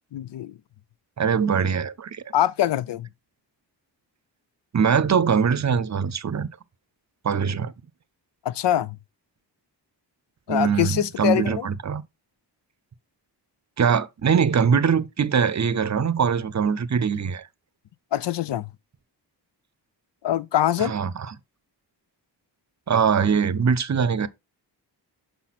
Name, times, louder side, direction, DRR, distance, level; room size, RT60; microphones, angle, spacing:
voice 1, 0.1-0.6 2.3-3.1 8.4-9.0 10.5-11.7 18.1-18.7 20.2-20.9, left 12 dB, 70° left, 0.5 m, -24 dB
voice 2, 1.2-2.3 4.7-6.5 7.2-7.7 10.5-12.0 13.8-17.4 20.8-21.1 22.9-24.3, right 6 dB, 40° right, 0.6 m, -22 dB
5.8 x 5.4 x 4.1 m
cardioid pair, 70°, 44 cm